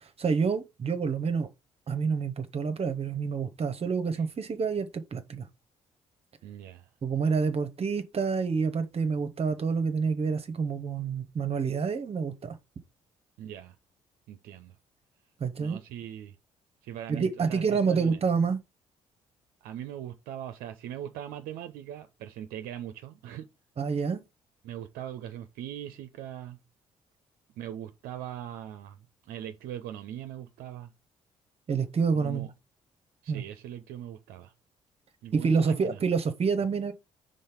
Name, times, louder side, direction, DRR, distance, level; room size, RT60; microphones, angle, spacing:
voice 1, 0.0-1.5 1.9-5.5 7.0-12.6 15.4-15.8 17.1-18.6 23.8-24.2 31.7-32.5 33.3-33.4 35.3-36.9, right 5 dB, 40° right, 0.8 m, -28 dB
voice 2, 6.4-6.9 13.4-13.8 14.3-14.8 15.6-16.4 16.8-18.2 19.6-23.5 24.6-26.6 27.6-30.9 32.1-32.5 33.2-34.5 35.2-36.0, right 11 dB, 65° right, 0.6 m, -40 dB
5.5 x 3.8 x 5.1 m
figure-of-eight pair, 45°, 16 cm